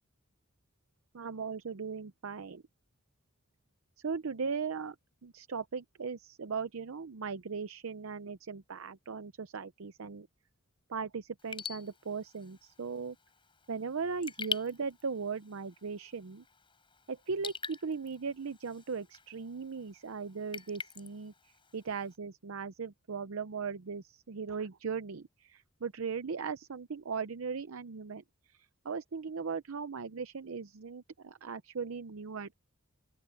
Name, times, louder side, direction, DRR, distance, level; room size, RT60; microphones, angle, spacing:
voice 1, 1.1-2.6 4.0-5.0 5.2-10.3 10.9-13.2 13.7-16.4 17.1-32.5, right 5 dB, 75° right, 0.6 m, -38 dB
Raindrop / Drip, 11.4-22.2, left 5 dB, 25° left, 7.2 m, -46 dB
open air
head